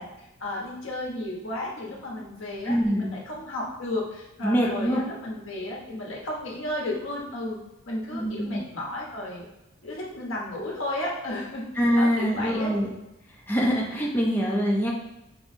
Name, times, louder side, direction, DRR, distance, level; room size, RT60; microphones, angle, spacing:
voice 1, 0.0-7.6 7.9-9.4 9.8-11.7 12.0-12.8, left 1 dB, 80° left, -3 dB, 1.2 m, -33 dB
voice 2, 2.6-3.1 4.4-5.0 8.1-8.7 11.8-12.9 13.3-14.9, equal, 10° left, -3 dB, 0.6 m, -24 dB
6.0 x 3.1 x 2.6 m, 0.91 s
head